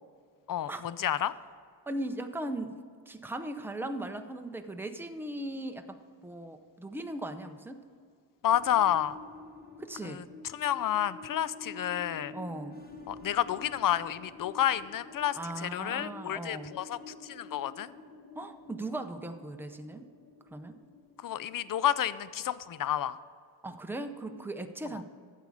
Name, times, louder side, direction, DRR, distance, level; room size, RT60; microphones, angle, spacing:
voice 1, 0.5-1.3 8.4-9.2 10.0-10.2 10.5-12.3 13.1-17.9 21.2-23.2, left 11 dB, 50° left, 16 dB, 0.4 m, -30 dB
voice 2, 1.9-2.8 3.1-6.0 6.2-7.8 9.8-10.2 12.3-12.8 15.3-16.8 18.4-20.0 20.5-20.8 23.6-25.0, right 1 dB, 5° right, 6 dB, 0.6 m, -38 dB
sound 1, 8.4-23.1, left 3 dB, 20° left, 1.1 m, -50 dB
12.0 x 8.3 x 4.8 m, 2.2 s
wide cardioid pair, 115°, 44 cm